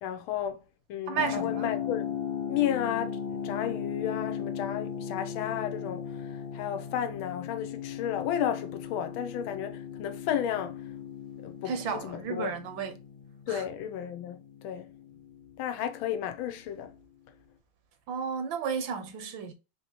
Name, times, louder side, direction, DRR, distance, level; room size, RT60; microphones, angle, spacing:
voice 1, 0.0-2.2 2.5-10.8 11.4-12.5 13.5-14.4 14.6-14.9 15.6-16.9, left 10 dB, 85° left, 1.4 m, -33 dB
voice 2, 1.1-1.7 11.6-13.0 13.5-13.6 18.1-19.5, right 6 dB, 75° right, 1.5 m, -33 dB
sound 1, 1.2-15.9, left 8 dB, 65° left, 0.6 m, -37 dB
4.6 x 2.8 x 2.8 m
omnidirectional pair, 2.2 m